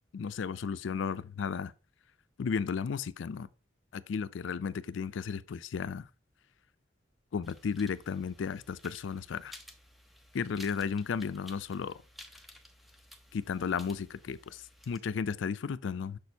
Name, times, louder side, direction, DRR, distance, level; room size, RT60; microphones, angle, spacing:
voice 1, 0.1-1.7 2.4-3.5 3.9-6.1 7.3-9.6 10.3-12.0 13.3-16.2, left 6 dB, 70° left, 0.4 m, -34 dB
sound 1, 7.4-15.0, left 1 dB, ahead, 0.5 m, -54 dB
6.8 x 6.2 x 2.7 m
head